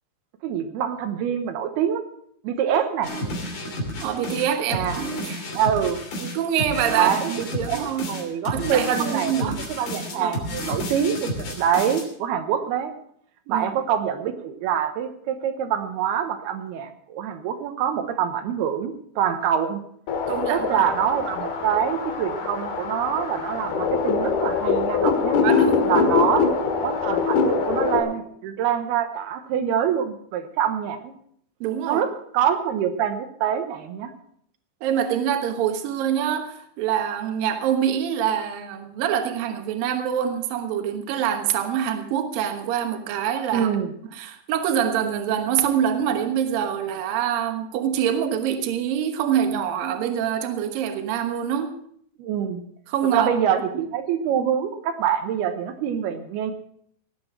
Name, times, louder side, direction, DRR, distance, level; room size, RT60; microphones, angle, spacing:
voice 1, 0.4-2.1 2.4-3.1 4.7-5.0 5.5-6.0 7.0-12.9 13.5-19.8 20.5-25.4 25.8-26.5 26.8-31.1 31.9-34.1 43.5-43.9 52.2-52.6 53.1-56.5, right 9 dB, 90° right, 6 dB, 3.1 m, -25 dB
sound 1, 3.0-12.0, equal, 60° left, 4.6 m, -31 dB
voice 2, 4.0-5.4 6.2-8.1 8.5-9.6 10.2-10.6 13.5-13.7 20.3-20.8 25.4-26.0 31.6-32.0 34.8-43.7 44.1-51.7 52.9-53.3, right 9 dB, 70° right, 6 dB, 2.9 m, -25 dB
sound 2, 20.1-28.0, left 5 dB, 85° left, 3.7 m, -23 dB
17.5 x 8.6 x 6.0 m, 0.66 s
omnidirectional pair, 4.4 m